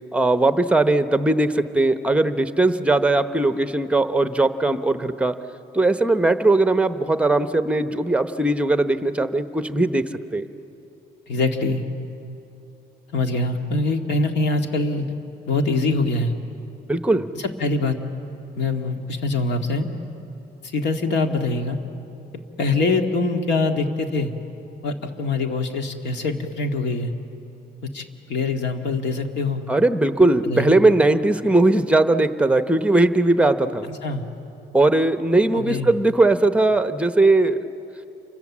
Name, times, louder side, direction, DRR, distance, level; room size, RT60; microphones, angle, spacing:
voice 1, 0.1-5.3 5.7-10.0 10.3-10.4 16.9-17.3 29.7-33.9 34.7-37.6, right 2 dB, 5° right, 10 dB, 0.8 m, -19 dB
voice 2, 11.3-11.8 13.1-15.1 15.5-16.3 17.3-18.0 18.5-19.9 20.6-21.8 22.6-24.3 24.8-27.1 27.9-29.6 30.4-30.8 33.9-34.2 35.5-35.9, left 3 dB, 80° left, 5 dB, 2.1 m, -24 dB
29.0 x 25.0 x 7.3 m, 2.9 s
cardioid pair, 135°, 18 cm